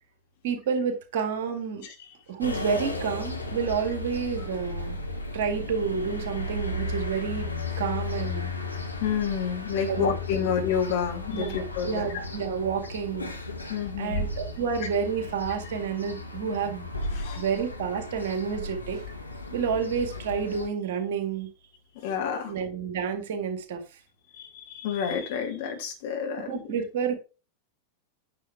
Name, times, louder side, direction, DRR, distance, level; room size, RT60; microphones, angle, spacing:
voice 1, 0.4-1.9 2.3-5.0 5.3-7.5 7.8-8.5 9.9-10.1 10.4-10.5 11.3-13.3 14.0-16.9 17.3-19.0 19.5-21.5 22.5-23.8 26.4-27.1, right 6 dB, 55° right, 7 dB, 1.9 m, -29 dB
sound 1, 2.4-20.7, left 2 dB, 85° left, 1.4 m, -35 dB
voice 2, 9.0-12.1 13.7-14.2 17.1-17.4 22.0-22.5 24.4-26.6, left 7 dB, 50° left, 3 dB, 2.6 m, -29 dB
9.7 x 6.6 x 3.4 m, 0.32 s
figure-of-eight pair, 90°, 0 cm